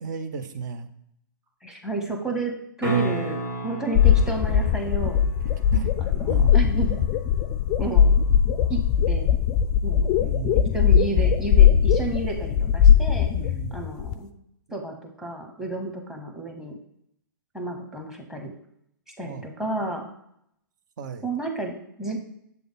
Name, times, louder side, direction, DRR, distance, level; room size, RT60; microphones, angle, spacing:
voice 1, 0.0-0.9 2.0-2.1 5.7-5.9 6.3-6.6 10.2-10.8 13.3-13.9 19.2-19.4 21.0-21.3, right 5 dB, 60° right, 9 dB, 0.7 m, -35 dB
voice 2, 1.6-5.2 6.0-7.0 7.8-8.1 8.7-8.8 9.1-9.4 9.8-10.2 10.5-13.3 13.7-14.3 14.7-16.8 17.5-18.5 19.2-20.1 21.2-22.2, right 3 dB, 5° right, 3 dB, 0.9 m, -31 dB
sound 1, 2.8-8.8 13.5-13.6, right 2 dB, 85° right, 2.0 m, -34 dB
sound 2, 3.9-14.1, left 8 dB, 30° left, 0.4 m, -20 dB
6.9 x 3.4 x 4.0 m, 0.75 s
hypercardioid pair, 125°, 11 cm